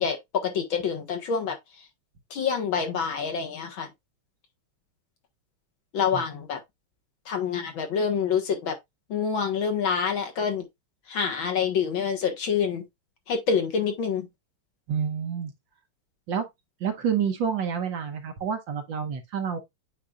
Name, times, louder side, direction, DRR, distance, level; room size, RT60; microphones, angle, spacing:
voice 1, 0.0-1.6 2.3-3.9 5.9-6.6 7.3-8.7 9.1-10.7 11.1-12.8 13.3-14.3, left 6 dB, 65° left, 2.1 m, -27 dB
voice 2, 14.9-15.5 16.3-16.5 16.8-19.6, right 7 dB, 65° right, 1.6 m, -28 dB
8.6 x 5.0 x 2.4 m
omnidirectional pair, 2.4 m